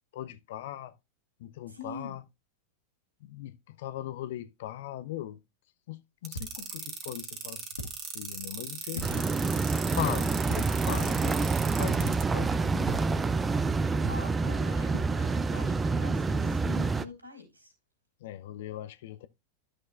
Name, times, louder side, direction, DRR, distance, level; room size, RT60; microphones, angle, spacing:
voice 1, 0.1-0.9 1.4-2.2 3.2-5.4 5.9-9.2 9.9-13.3 18.2-19.3, left 13 dB, 55° left, 0.6 m, -39 dB
voice 2, 1.7-2.2 8.9-9.4 14.1-17.7, left 3 dB, 85° right, 3.8 m, -45 dB
sound 1, 6.2-12.2, right 7 dB, 30° right, 1.7 m, -38 dB
sound 2, 6.3-6.9 7.7-8.3 8.9-9.6 10.5-11.0 11.3-11.4 12.9-13.4 14.0-14.6 14.9-15.4, left 2 dB, 75° left, 1.6 m, -42 dB
sound 3, 9.0-17.0, right 4 dB, 15° right, 0.5 m, -27 dB
13.0 x 6.3 x 2.4 m
figure-of-eight pair, 90°, 0 cm